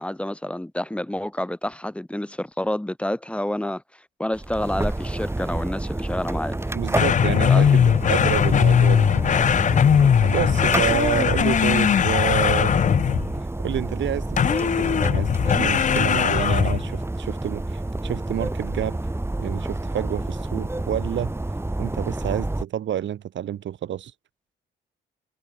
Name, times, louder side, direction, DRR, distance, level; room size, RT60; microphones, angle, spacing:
voice 1, 0.0-3.8 4.2-6.6 7.5-7.7, left 1 dB, 5° left, 2.0 m, -28 dB
sound 1, 4.3-22.7, right 2 dB, 10° right, 8.0 m, -29 dB
voice 2, 6.7-9.3 10.2-12.8 13.6-19.0 19.4-21.3 21.8-24.1, right 10 dB, 70° right, 6.4 m, -29 dB
sound 2, 7.0-13.4 14.4-16.9, left 8 dB, 40° left, 0.6 m, -19 dB
cardioid pair, 90°, 20 cm